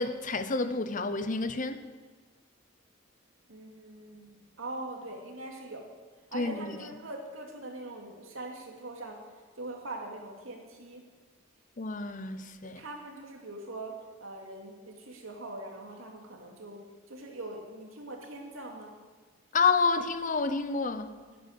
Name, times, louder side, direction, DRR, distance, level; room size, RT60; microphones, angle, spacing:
voice 1, 0.0-1.8 6.3-6.7 11.8-12.8 19.5-21.2, left 4 dB, 40° left, 0.7 m, -29 dB
voice 2, 3.5-5.8 6.3-9.2 9.6-11.1 12.6-19.0 21.3-21.4, right 2 dB, 80° right, 2.6 m, -42 dB
10.5 x 10.5 x 8.3 m
head